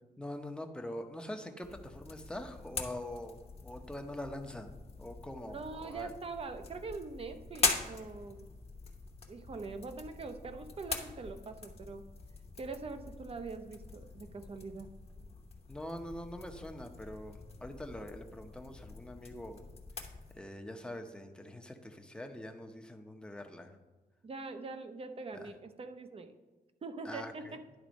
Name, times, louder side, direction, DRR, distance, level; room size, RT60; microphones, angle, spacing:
voice 1, 0.2-6.1 15.7-19.6 20.4-23.8 25.4-25.5 27.0-27.6, left 1 dB, 5° left, 4 dB, 0.7 m, -44 dB
sound 1, 1.6-20.4, left 4 dB, 40° left, 1.0 m, -42 dB
voice 2, 5.4-8.5 9.3-12.0 12.6-14.9 24.2-26.4 26.8-27.6, right 4 dB, 35° right, 8 dB, 0.6 m, -43 dB
10.5 x 4.0 x 5.2 m, 1.3 s
wide cardioid pair, 135°, 16 cm